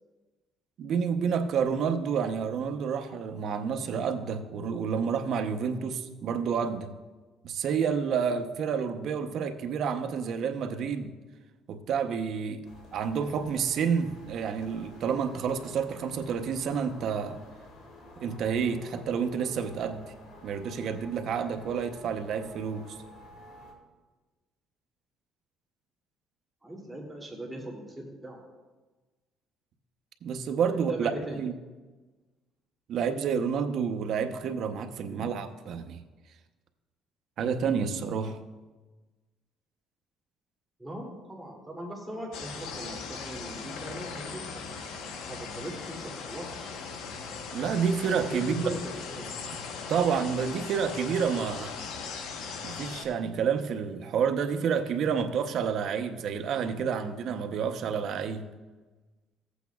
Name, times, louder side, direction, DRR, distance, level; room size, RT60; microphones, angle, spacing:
voice 1, 0.8-6.9 7.4-11.1 11.7-12.7 12.9-17.4 18.2-20.0 20.4-23.0 30.2-31.5 32.9-36.0 37.4-38.4 47.5-48.6 49.9-51.8 52.6-58.5, right 6 dB, 60° right, 7 dB, 0.8 m, -29 dB
sound 1, 12.6-23.7, left 1 dB, 65° left, 2.2 m, -51 dB
voice 2, 26.6-28.4 30.7-31.4 35.1-35.3 40.8-45.0 45.3-46.6 48.3-49.3, right 1 dB, 10° right, -2 dB, 2.7 m, -39 dB
sound 2, 42.3-53.1, left 5 dB, 80° left, 1.1 m, -39 dB
15.0 x 8.2 x 2.3 m, 1.3 s
cardioid pair, 105°, 0 cm